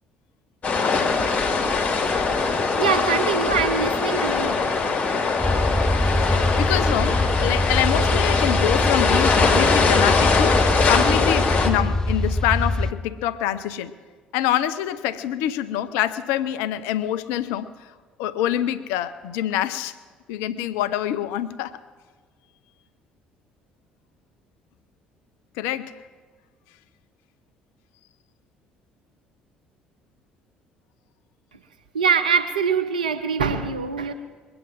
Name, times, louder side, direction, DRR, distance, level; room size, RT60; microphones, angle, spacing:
sound 1, 0.6-11.7, left 4 dB, 35° left, 2.6 m, -21 dB
voice 1, 2.8-4.5 31.9-34.1, right 6 dB, 80° right, 8 dB, 0.7 m, -23 dB
sound 2, 5.4-12.9, left 1 dB, 15° left, 0.9 m, -24 dB
voice 2, 6.2-13.9 14.3-17.9 18.2-20.0 20.3-21.8 25.6-26.0, left 11 dB, 65° left, 13 dB, 0.5 m, -26 dB
21.5 x 8.7 x 7.6 m, 1.5 s
figure-of-eight pair, 50°, 4 cm